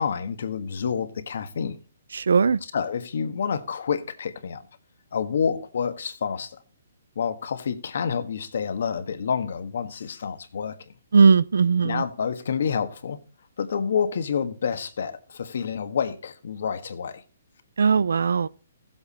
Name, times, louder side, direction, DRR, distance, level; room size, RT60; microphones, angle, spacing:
voice 1, 0.0-1.8 2.6-4.6 5.1-6.6 7.1-10.9 11.8-13.2 13.6-17.2, left 6 dB, 65° left, 1.4 m, -28 dB
voice 2, 2.1-2.6 11.1-12.0 17.8-18.5, right 5 dB, 85° right, 0.6 m, -18 dB
15.0 x 7.9 x 4.2 m
hypercardioid pair, 160°, 0 cm